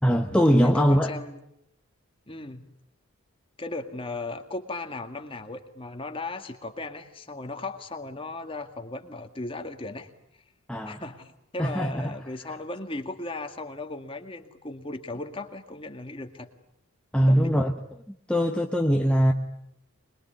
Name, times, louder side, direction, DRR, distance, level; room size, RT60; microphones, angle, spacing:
voice 1, 0.0-1.1 10.7-11.0 11.6-12.2 17.1-17.7 18.3-19.3, equal, 5° left, 1.1 m, -21 dB
voice 2, 0.6-1.4 2.3-2.7 3.6-10.1 10.8-16.5 17.2-17.6, left 2 dB, 25° left, 2.0 m, -36 dB
25.5 x 22.0 x 9.5 m
head